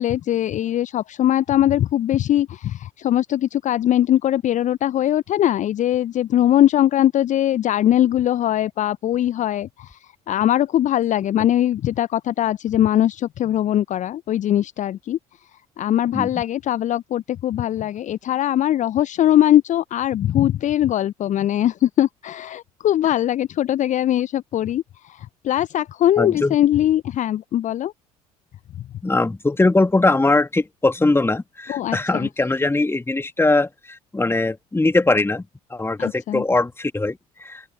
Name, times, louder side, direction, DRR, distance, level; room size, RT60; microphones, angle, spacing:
voice 1, 0.0-15.2 15.8-27.9 31.7-32.3 36.0-36.4, left 12 dB, 40° left, 0.7 m, -21 dB
voice 2, 26.2-26.6 29.0-35.4 35.7-37.6, left 2 dB, 15° left, 2.1 m, -21 dB
open air
figure-of-eight pair, 55°, 19 cm